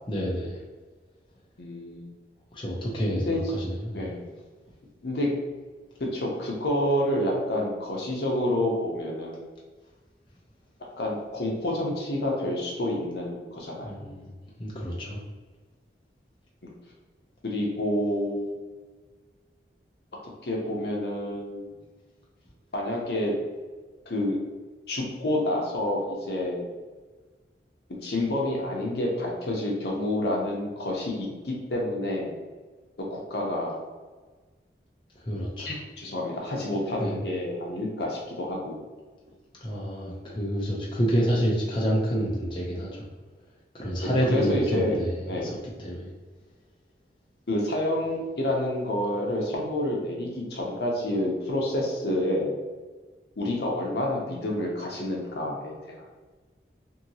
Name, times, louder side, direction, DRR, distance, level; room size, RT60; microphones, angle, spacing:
voice 1, 0.1-0.6 2.5-4.1 13.8-14.3 14.6-15.2 35.2-35.7 37.0-37.2 39.6-43.0 43.7-45.5 45.8-46.1, equal, 30° left, -5 dB, 0.5 m, -28 dB
voice 2, 1.6-2.2 3.2-3.4 3.9-4.3 5.0-5.3 6.0-9.4 11.0-14.0 17.4-18.5 20.4-21.7 22.7-23.3 24.1-24.4 24.9-26.6 28.0-32.4 33.1-33.8 35.6-38.8 44.3-44.9 45.3-45.6 47.5-52.6 53.4-56.1, left 1 dB, 70° left, -2 dB, 0.7 m, -28 dB
2.8 x 2.7 x 2.7 m, 1.3 s
head